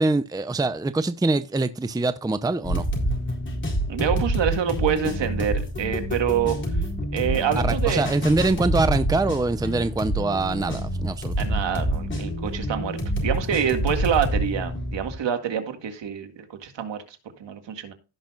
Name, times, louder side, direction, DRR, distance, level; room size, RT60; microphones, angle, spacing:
voice 1, 0.0-2.9 7.6-11.3, right 2 dB, 10° right, 0.6 m, -24 dB
sound 1, 2.6-15.2, equal, 25° left, 4.1 m, -27 dB
voice 2, 3.9-6.6 7.1-8.0 11.4-17.9, right 8 dB, 65° right, 2.1 m, -26 dB
16.5 x 6.0 x 2.5 m
cardioid pair, 90°, 46 cm